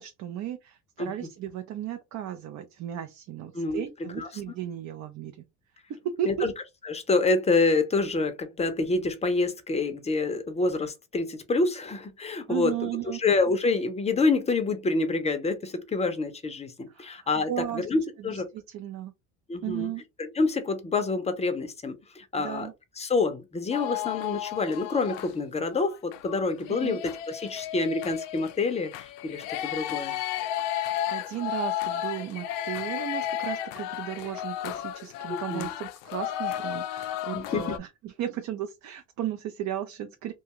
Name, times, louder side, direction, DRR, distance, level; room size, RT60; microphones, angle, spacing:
voice 1, 0.0-5.4 5.9-6.5 12.5-13.2 16.9-17.9 18.2-19.1 19.6-20.0 22.4-22.7 26.7-27.0 30.5-40.3, right 11 dB, 50° right, 0.5 m, -35 dB
voice 2, 6.8-12.7 13.2-18.5 19.5-19.9 20.2-22.7 23.0-30.2 35.3-35.7 37.3-37.7, left 3 dB, 20° left, 0.5 m, -27 dB
sound 1, 23.7-25.3 25.7-37.8, left 12 dB, 90° left, 0.5 m, -33 dB
2.5 x 2.3 x 2.9 m
cardioid pair, 105°, 37 cm